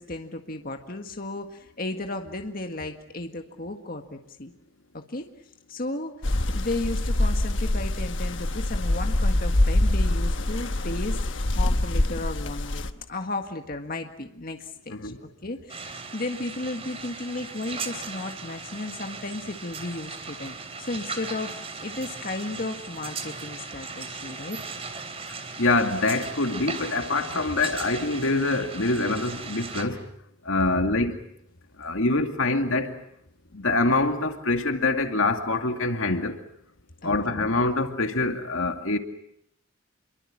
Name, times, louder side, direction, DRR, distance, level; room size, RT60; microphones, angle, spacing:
voice 1, 0.0-4.5 4.9-5.3 5.7-15.1 15.4-24.6 27.2-27.4 30.7-30.8 37.0-37.5, left 2 dB, 45° left, 1.7 m, -34 dB
sound 1, 6.2-12.9, left 1 dB, 65° left, 1.3 m, -25 dB
sound 2, 15.7-29.8, right 4 dB, 30° right, 3.1 m, -38 dB
voice 2, 25.6-30.0 30.5-31.2 31.8-33.0 33.5-36.4 37.0-39.0, left 2 dB, 90° left, 2.4 m, -25 dB
27.5 x 23.5 x 7.5 m
head